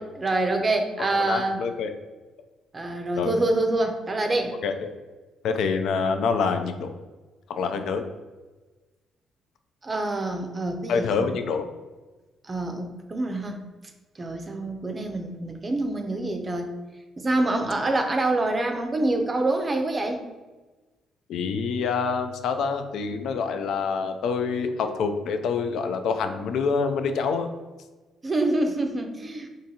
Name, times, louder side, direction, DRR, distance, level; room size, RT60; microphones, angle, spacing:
voice 1, 0.0-1.6 2.7-4.5 9.8-11.4 12.4-13.6 14.2-16.7 17.2-20.2 28.2-29.5, right 2 dB, 30° right, 5 dB, 0.5 m, -26 dB
voice 2, 1.0-1.9 3.2-3.3 4.6-4.9 5.4-6.9 7.5-8.0 10.9-11.7 21.3-27.5, left 5 dB, 75° left, 7 dB, 0.3 m, -26 dB
3.9 x 2.5 x 2.7 m, 1.2 s
cardioid pair, 90°, 0 cm